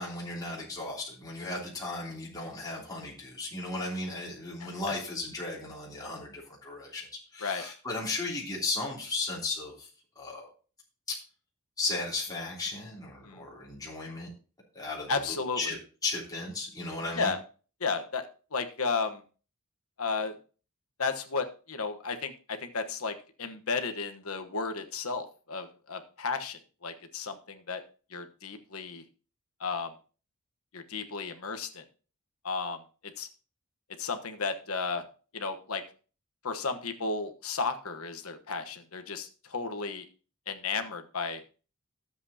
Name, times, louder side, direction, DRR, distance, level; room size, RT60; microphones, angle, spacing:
voice 1, 0.0-7.1 7.3-9.9 10.2-10.5 11.1-11.2 11.8-14.3 14.7-15.2 15.5-15.8 16.0-17.3, left 3 dB, 15° left, -5 dB, 3.0 m, -35 dB
voice 2, 15.1-15.7 17.2-17.4 17.8-19.2 20.0-20.3 21.0-27.8 28.1-29.0 29.6-29.9 30.7-31.8 32.4-32.8 33.2-33.3 34.0-35.0 35.3-35.8 36.4-40.1 40.5-41.4, left 4 dB, 70° left, 7 dB, 1.2 m, -33 dB
12.5 x 7.9 x 2.8 m, 0.37 s
head